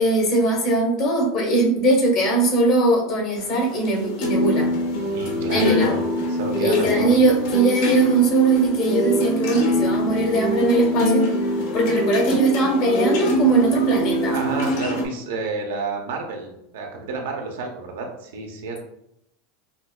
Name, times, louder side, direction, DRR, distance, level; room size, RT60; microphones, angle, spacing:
voice 1, 0.0-4.7 5.5-5.9 6.6-11.3 11.7-14.4, right 2 dB, 50° left, 0 dB, 1.3 m, -20 dB
sound 1, 3.4-15.0, equal, 70° left, 1.0 m, -23 dB
voice 2, 5.1-6.0 6.3-7.3 14.3-18.8, right 3 dB, 85° right, 1 dB, 0.8 m, -30 dB
5.1 x 2.1 x 2.3 m, 0.79 s
supercardioid pair, 120°, 0 cm